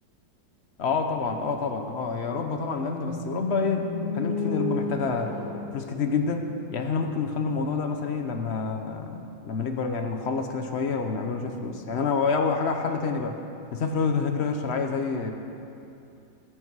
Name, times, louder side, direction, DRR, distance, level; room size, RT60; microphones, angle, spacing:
voice 1, 0.8-3.9 4.1-5.3 5.7-13.4 13.7-15.3, left 5 dB, 55° left, 5 dB, 0.7 m, -28 dB
sound 1, 2.7-6.9, left 3 dB, 35° left, 1.9 m, -33 dB
20.0 x 7.9 x 4.7 m, 2.7 s
omnidirectional pair, 2.1 m